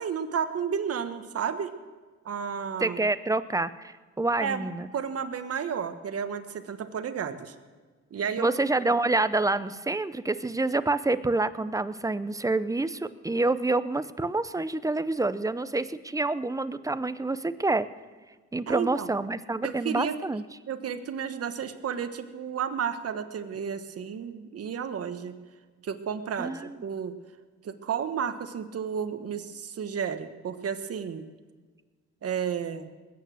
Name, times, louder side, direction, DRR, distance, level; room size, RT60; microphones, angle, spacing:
voice 1, 0.0-1.7 2.2-3.0 4.4-4.7 4.9-7.5 8.1-8.5 18.7-19.1 19.6-20.2 20.7-25.3 25.8-27.1 27.6-31.3 32.2-32.9, right 7 dB, 50° right, 9 dB, 1.3 m, -32 dB
voice 2, 2.8-4.9 8.4-17.9 18.5-20.4 26.4-26.7, right 2 dB, 10° right, 14 dB, 0.6 m, -27 dB
21.0 x 9.2 x 6.4 m, 1.4 s
cardioid pair, 90°, 30 cm